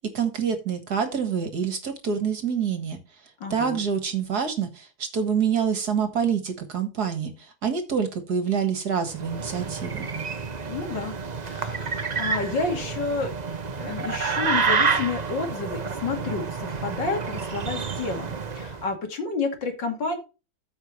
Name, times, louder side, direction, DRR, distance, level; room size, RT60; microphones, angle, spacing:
voice 1, 0.1-3.0 3.5-7.3 7.6-10.1, right 7 dB, 55° right, 7 dB, 2.0 m, -26 dB
voice 2, 3.4-3.8 10.7-11.2 11.4-13.3 13.8-18.3 18.6-20.2, left 4 dB, 65° left, 4 dB, 2.9 m, -30 dB
sound 1, 9.1-18.8, right 5 dB, 70° right, 0.4 m, -29 dB
14.0 x 5.6 x 3.1 m, 0.30 s
omnidirectional pair, 2.1 m